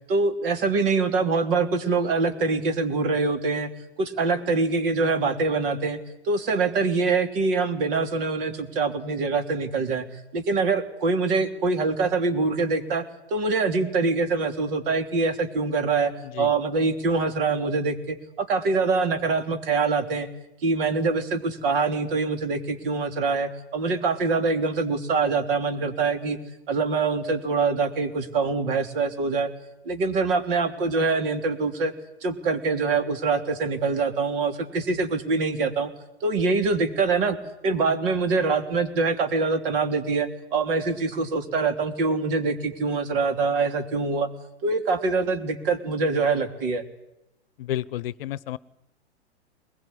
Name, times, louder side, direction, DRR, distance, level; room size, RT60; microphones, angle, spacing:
voice 1, 0.1-3.7 4.0-6.0 6.2-10.1 10.3-13.0 13.3-20.3 20.6-26.4 26.7-29.5 29.8-31.9 32.2-35.9 36.2-37.4 37.6-44.3 44.6-46.8, right 4 dB, 55° right, 8 dB, 3.3 m, -24 dB
voice 2, 47.6-48.6, left 13 dB, 55° left, 20 dB, 0.9 m, -31 dB
22.0 x 21.0 x 9.9 m, 0.88 s
hypercardioid pair, 110°, 33 cm